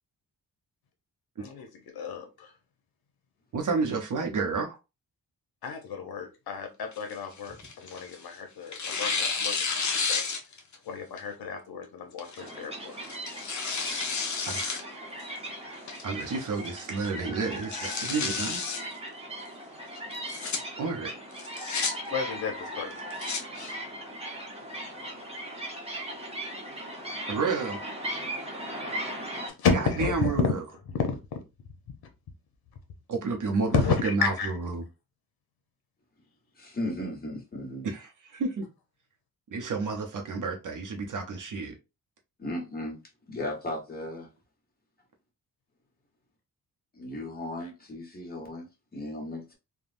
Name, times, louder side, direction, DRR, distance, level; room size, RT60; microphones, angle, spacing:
voice 1, 1.9-2.5 5.6-9.6 9.9-10.2 10.9-12.9 22.1-22.9 23.6-23.7 29.6-30.4 31.0-31.2 33.7-34.5, left 5 dB, 85° left, 0.8 m, -31 dB
voice 2, 3.5-4.7 14.5-14.8 15.6-15.7 16.0-18.6 20.8-21.1 27.3-27.8 29.7-30.6 33.1-34.8 37.8-38.7 39.5-41.7, right 4 dB, 60° right, 0.7 m, -30 dB
Tearing, 6.9-8.2 8.7-10.8 11.2-11.3 12.2-12.5 13.0-14.8 15.2-15.3 15.9-16.3 16.6-16.7 17.0-17.1 17.5-18.8 20.1-20.6 21.4-21.9 22.9-23.4, left 5 dB, 50° left, 0.8 m, -31 dB
sound 1, 12.4-29.5, right 1 dB, 15° right, 0.9 m, -38 dB
voice 3, 36.6-37.9 42.4-43.0 43.3-44.3 46.9-49.5, left 1 dB, 25° left, 1.2 m, -36 dB
3.4 x 2.2 x 2.5 m
wide cardioid pair, 115°, 36 cm